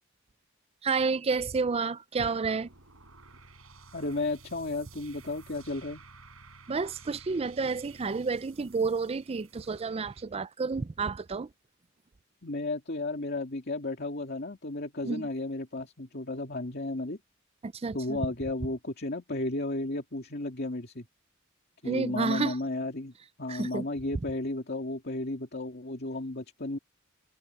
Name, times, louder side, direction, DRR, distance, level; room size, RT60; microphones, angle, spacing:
voice 1, 0.8-2.7 6.7-11.5 15.0-15.3 17.6-18.3 21.8-22.6 23.5-23.9, right 4 dB, 30° right, 0.4 m, -30 dB
sound 1, 2.4-10.2, right 4 dB, 85° right, 7.3 m, -53 dB
voice 2, 3.9-6.0 12.4-17.2 17.9-21.1 21.8-23.1 23.4-26.8, left 2 dB, 50° left, 2.4 m, -33 dB
head